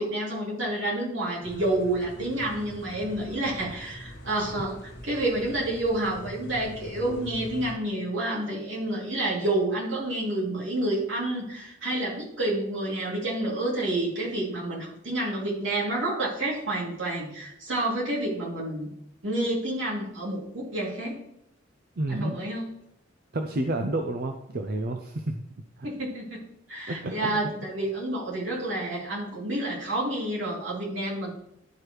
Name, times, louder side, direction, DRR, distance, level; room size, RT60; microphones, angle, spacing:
voice 1, 0.0-18.9 19.2-21.2 22.1-22.7 25.8-26.4 26.7-31.3, right 1 dB, 75° right, -5 dB, 3.0 m, -29 dB
sound 1, 1.4-7.8, equal, 60° left, 1.2 m, -43 dB
voice 2, 22.0-22.4 23.3-25.4 25.8-25.9 26.9-27.4, right 2 dB, 50° right, 5 dB, 0.6 m, -30 dB
11.5 x 4.6 x 3.2 m, 0.79 s
head